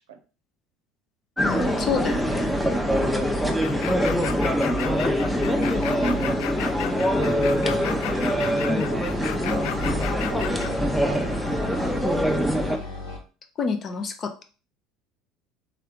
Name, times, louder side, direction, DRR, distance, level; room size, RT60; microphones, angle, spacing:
voice 1, 1.4-2.5 8.7-8.8 13.6-14.4, left 5 dB, 40° left, 6 dB, 0.8 m, -28 dB
sound 1, 1.4-12.8, equal, 5° left, 0.7 m, -24 dB
sound 2, 1.5-13.2, left 2 dB, 90° left, 1.1 m, -36 dB
sound 3, 3.6-10.7, left 11 dB, 65° left, 0.3 m, -34 dB
voice 2, 7.1-7.8 8.3-9.1 9.5-11.3, right 6 dB, 75° right, 7 dB, 0.6 m, -40 dB
3.7 x 3.4 x 3.6 m, 0.37 s
hypercardioid pair, 70°, 0 cm